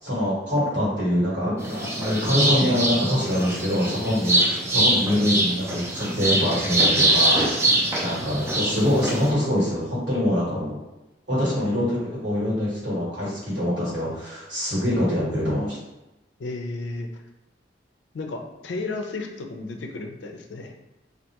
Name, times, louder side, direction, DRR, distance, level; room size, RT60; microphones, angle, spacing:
voice 1, 0.0-4.4 4.7-7.6 8.0-10.8 11.3-15.8, left 1 dB, 75° right, -5 dB, 1.3 m, -24 dB
sound 1, 1.6-9.3, right 1 dB, 15° right, 0.4 m, -23 dB
voice 2, 16.4-17.2 18.1-20.7, left 3 dB, 70° left, 4 dB, 0.4 m, -33 dB
3.3 x 2.4 x 2.9 m, 1.0 s
head